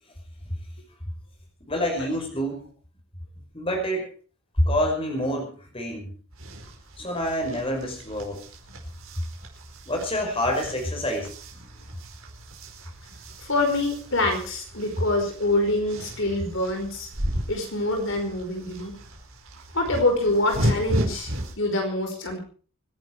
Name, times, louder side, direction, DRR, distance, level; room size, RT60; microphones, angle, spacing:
voice 1, 1.6-2.7 3.5-4.1 4.6-6.1 7.0-8.4 9.9-11.7, equal, 25° left, 3 dB, 5.4 m, -27 dB
sound 1, 6.3-21.5, equal, 70° right, 4.9 m, -35 dB
voice 2, 13.4-17.1 17.5-18.9 19.7-22.4, left 2 dB, 60° left, 3 dB, 5.0 m, -25 dB
24.5 x 11.0 x 4.8 m, 0.40 s
head